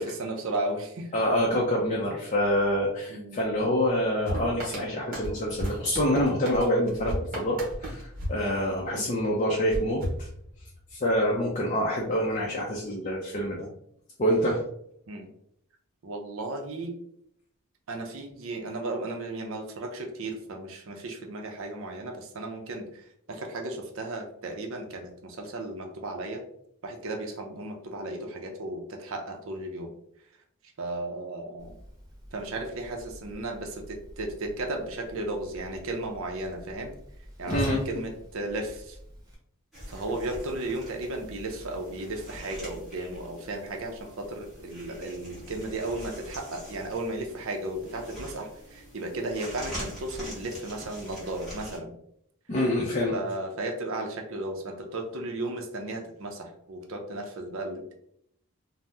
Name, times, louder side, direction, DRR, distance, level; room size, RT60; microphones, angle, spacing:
voice 1, 0.0-1.1 3.1-3.4 8.8-9.1 15.1-15.3 16.0-16.9 17.9-26.4 26.8-29.9 30.8-31.7 32.3-36.9 37.4-39.0 39.9-51.9 53.1-57.9, right 2 dB, 65° right, 3 dB, 0.5 m, -35 dB
voice 2, 1.1-10.3 10.9-13.7 14.2-14.6 37.5-37.8 52.5-53.2, equal, 35° left, -2 dB, 0.4 m, -26 dB
sound 1, 4.2-9.1 9.7-10.9, equal, 40° right, 0.9 m, -35 dB
Whoosh swoosh swish, 31.6-39.3, equal, 15° right, 0.6 m, -42 dB
sound 2, 39.7-51.8, equal, ahead, 1.0 m, -44 dB
2.7 x 2.0 x 3.3 m, 0.71 s
head